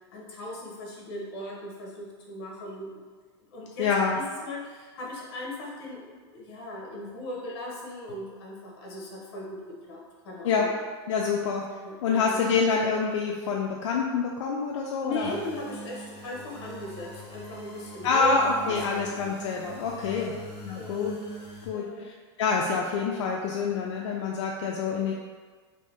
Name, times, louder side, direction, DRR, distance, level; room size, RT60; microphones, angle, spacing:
voice 1, 0.1-2.9 3.5-6.0 6.3-10.7 11.8-12.4 15.0-19.0 20.1-20.4 20.8-21.1 21.7-22.0, left 1 dB, 60° left, -3 dB, 0.9 m, -38 dB
voice 2, 3.8-4.2 10.4-10.7 11.1-11.6 12.0-15.4 18.0-20.3 20.6-21.2 21.6-22.1 22.4-25.1, left 5 dB, 85° left, -1 dB, 0.4 m, -26 dB
sound 1, 15.2-21.7, equal, 35° left, 1.1 m, -43 dB
2.8 x 2.6 x 3.4 m, 1.5 s
supercardioid pair, 175°, 15 cm